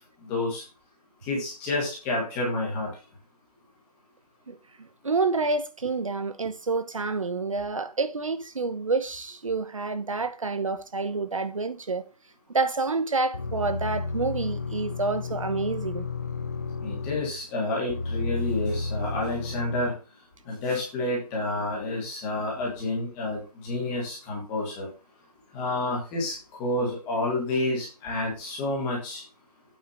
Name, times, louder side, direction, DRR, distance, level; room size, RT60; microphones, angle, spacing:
voice 1, 0.2-0.6 1.2-2.9 16.8-19.9 20.4-24.9 25.5-26.3 26.6-29.2, left 2 dB, 5° left, 1.5 m, -29 dB
voice 2, 4.5-12.0 12.5-16.1, right 3 dB, 55° right, 1.0 m, -28 dB
sound 1, 13.3-17.4 17.9-19.9, left 3 dB, 25° left, 0.8 m, -32 dB
8.7 x 4.9 x 6.7 m
hypercardioid pair, 175°, 20 cm